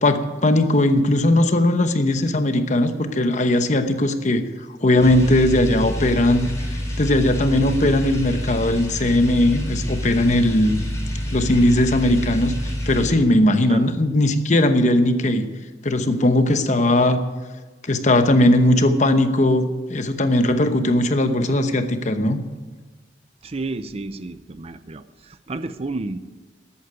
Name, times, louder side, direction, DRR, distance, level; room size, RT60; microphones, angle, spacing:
voice 1, 0.0-4.4 4.8-6.5 7.0-10.8 11.3-12.5 12.9-15.5 15.8-17.2 17.8-22.4, left 1 dB, 40° left, 8 dB, 1.0 m, -18 dB
sound 1, 5.0-13.1, equal, 15° left, 3.6 m, -28 dB
voice 2, 23.4-26.2, right 2 dB, 35° right, 12 dB, 0.5 m, -31 dB
13.5 x 8.6 x 9.3 m, 1.3 s
head